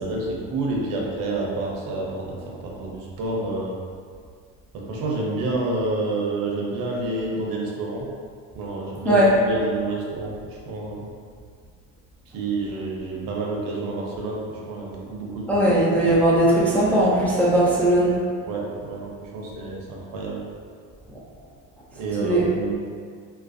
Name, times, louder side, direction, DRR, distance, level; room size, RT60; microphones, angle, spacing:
voice 1, 0.0-3.8 4.7-8.1 8.5-11.1 12.3-15.6 16.0-16.1 18.5-20.4 22.0-22.8, right 2 dB, 65° right, -2 dB, 0.6 m, -29 dB
voice 2, 15.5-18.2 22.2-22.4, right 1 dB, 5° left, -8 dB, 0.3 m, -18 dB
2.3 x 2.1 x 2.5 m, 2.1 s
supercardioid pair, 100°, 36 cm